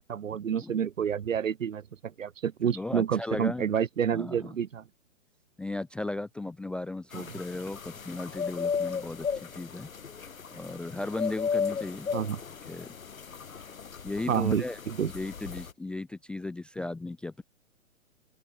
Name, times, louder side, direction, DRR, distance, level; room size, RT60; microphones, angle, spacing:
voice 1, 0.0-4.8 7.1-7.2 12.1-12.4 14.3-15.1, right 8 dB, 70° right, 1.8 m, -29 dB
voice 2, 2.7-3.7 4.1-4.6 5.6-9.9 10.5-12.1 12.7-12.9 14.0-14.8 15.1-17.4, left 2 dB, 5° left, 0.5 m, -36 dB
sound 1, 7.1-15.7, left 6 dB, 85° left, 1.8 m, -35 dB
open air
hypercardioid pair, 130°, 40 cm